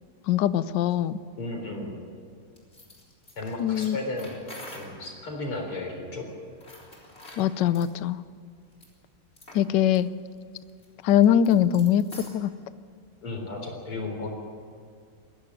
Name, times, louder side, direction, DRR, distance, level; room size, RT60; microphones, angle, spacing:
voice 1, 0.3-1.2 3.6-4.0 7.4-8.2 9.5-10.1 11.0-12.5, left 10 dB, 65° left, 14 dB, 1.2 m, -22 dB
voice 2, 1.3-1.9 3.4-4.4 4.7-6.2 13.2-14.3, left 2 dB, 85° left, 2 dB, 5.0 m, -34 dB
sound 1, 2.6-5.1 6.5-7.9 8.7-8.9 9.4-9.7 9.9-10.0 10.4-12.4, left 1 dB, 30° left, 4.1 m, -46 dB
22.0 x 16.0 x 9.7 m, 2.2 s
omnidirectional pair, 2.3 m